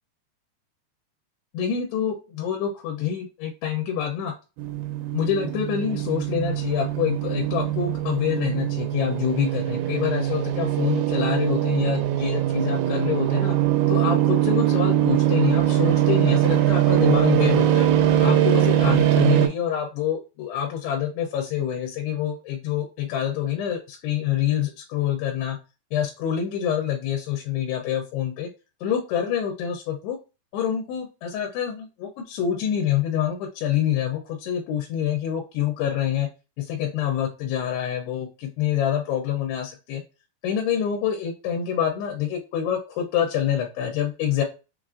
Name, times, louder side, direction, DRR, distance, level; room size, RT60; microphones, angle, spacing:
voice 1, 1.5-4.3 5.1-13.5 13.9-17.9 18.2-25.6 25.9-28.5 28.8-30.2 30.5-36.3 36.6-40.0 40.4-44.4, left 9 dB, 90° left, 3 dB, 2.7 m, -26 dB
sound 1, 4.6-19.5, right 12 dB, 90° right, 2.8 m, -22 dB
6.1 x 2.4 x 2.4 m, 0.31 s
omnidirectional pair, 4.6 m